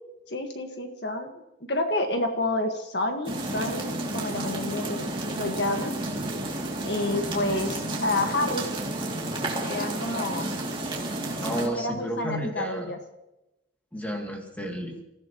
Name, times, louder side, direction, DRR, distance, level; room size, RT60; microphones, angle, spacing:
voice 1, 0.3-1.4 1.7-5.1 5.4-5.9 6.8-8.7 9.6-10.5 11.5-13.0, left 2 dB, 60° left, 4 dB, 1.7 m, -29 dB
sound 1, 3.2-11.7, right 1 dB, 25° right, 2.7 m, -31 dB
voice 2, 11.4-13.0 13.9-15.0, equal, 10° left, 1 dB, 2.5 m, -32 dB
30.0 x 16.0 x 3.1 m, 0.92 s
head